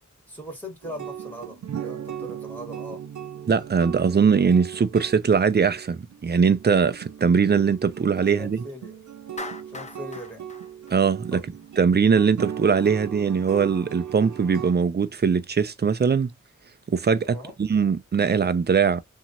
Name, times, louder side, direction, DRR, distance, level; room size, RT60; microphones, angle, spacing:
voice 1, 0.3-3.0 8.4-9.0 9.7-10.4 11.3-11.7 17.2-17.6, equal, 5° left, 1.7 m, -40 dB
sound 1, 0.8-14.7, right 9 dB, 75° right, 0.7 m, -38 dB
voice 2, 3.5-8.6 10.9-11.4 11.8-16.3 16.9-19.0, right 6 dB, 35° right, 0.5 m, -21 dB
Clapping, 9.4-11.7, left 3 dB, 25° left, 0.5 m, -40 dB
2.9 x 2.7 x 2.6 m
wide cardioid pair, 100°, 30 cm